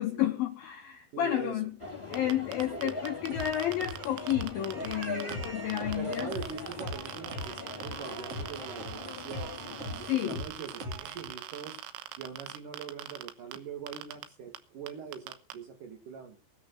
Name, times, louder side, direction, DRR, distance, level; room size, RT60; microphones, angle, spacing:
voice 1, 0.0-1.7 2.1-6.3 10.1-10.4, left 12 dB, 75° left, 2.2 m, -31 dB
voice 2, 1.1-1.6 2.7-3.0 6.0-11.8 12.2-16.4, right 6 dB, 55° right, 2.6 m, -43 dB
sound 1, 1.8-10.1, left 3 dB, 10° left, 1.6 m, -41 dB
sound 2, 2.1-5.5 5.7-13.6 13.9-14.2 14.5-14.6 14.9-15.5, right 10 dB, 80° right, 3.6 m, -44 dB
sound 3, 3.3-11.3, equal, 35° right, 2.9 m, -42 dB
20.0 x 7.1 x 6.6 m
omnidirectional pair, 5.6 m